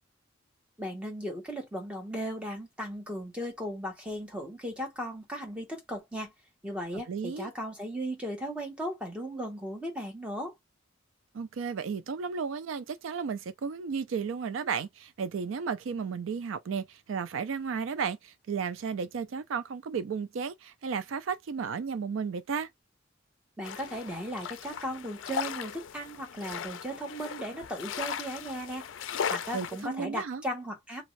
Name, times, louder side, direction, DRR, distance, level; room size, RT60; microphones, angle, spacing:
voice 1, 0.8-6.3 6.6-10.5 23.6-28.9 29.3-31.0, equal, 5° right, 1.1 m, -36 dB
voice 2, 7.1-7.5 11.3-22.7 29.5-30.4, right 6 dB, 80° right, 0.4 m, -33 dB
sound 1, 23.6-29.9, left 7 dB, 70° left, 0.4 m, -37 dB
2.6 x 2.4 x 3.1 m
head